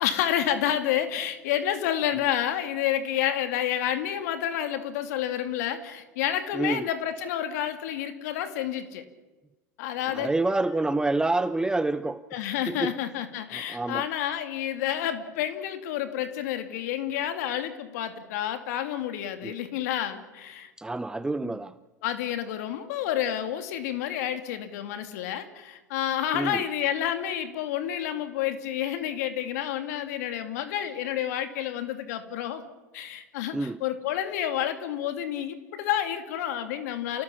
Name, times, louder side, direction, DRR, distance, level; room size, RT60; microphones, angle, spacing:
voice 1, 0.0-9.0 9.8-10.6 12.3-20.7 21.4-21.6 22.0-32.6 32.9-37.2, left 10 dB, 65° left, 2.5 m, -29 dB
voice 2, 6.5-6.8 10.1-12.2 12.7-13.0 13.5-14.1 19.4-19.5 20.8-21.7 26.3-26.6 33.5-33.8, right 2 dB, 10° right, 0.7 m, -27 dB
29.0 x 18.5 x 7.1 m
hypercardioid pair, 90°, 10 cm